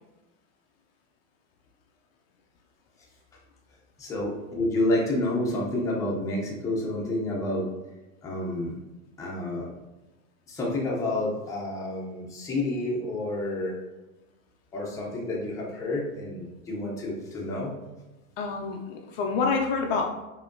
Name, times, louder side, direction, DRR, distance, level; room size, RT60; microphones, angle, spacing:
voice 1, 4.0-7.7 8.2-8.8 9.2-9.7 10.5-13.7 14.7-17.8, left 1 dB, 10° left, -4 dB, 0.6 m, -29 dB
voice 2, 18.4-20.1, left 4 dB, 45° left, 1 dB, 0.5 m, -27 dB
4.8 x 2.8 x 2.6 m, 1.1 s
supercardioid pair, 150°, 40 cm